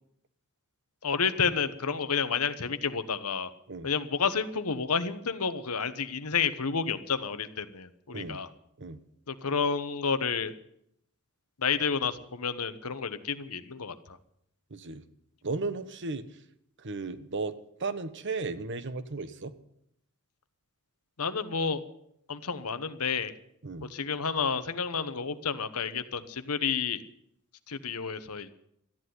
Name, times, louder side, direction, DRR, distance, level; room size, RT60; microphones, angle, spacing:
voice 1, 1.0-3.5 3.8-8.5 9.3-10.5 11.6-14.2 21.2-21.8 22.3-23.3 23.8-27.0 27.7-28.5, left 6 dB, 80° left, 12 dB, 1.1 m, -30 dB
voice 2, 14.7-15.0 15.4-16.3 16.8-17.5 17.8-19.5 23.6-23.9, right 3 dB, 55° right, 12 dB, 1.1 m, -35 dB
13.5 x 10.5 x 9.6 m, 0.74 s
head